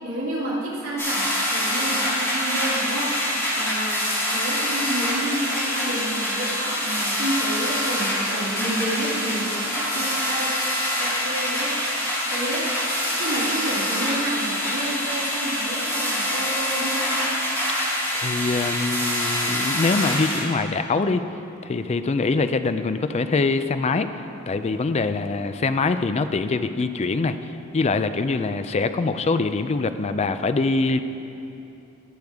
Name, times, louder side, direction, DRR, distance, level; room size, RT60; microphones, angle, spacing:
voice 1, 0.0-3.1 3.5-4.0 4.3-10.5 11.0-12.0 12.3-12.7 13.2-17.3, right 1 dB, 75° right, -6 dB, 2.7 m, -30 dB
sound 1, 1.0-20.4, left 1 dB, 15° left, 2.7 m, -25 dB
voice 2, 18.1-21.2 21.6-24.1 24.5-27.4 27.7-31.0, left 3 dB, 30° left, 10 dB, 0.4 m, -23 dB
18.5 x 6.6 x 3.5 m, 2.8 s
head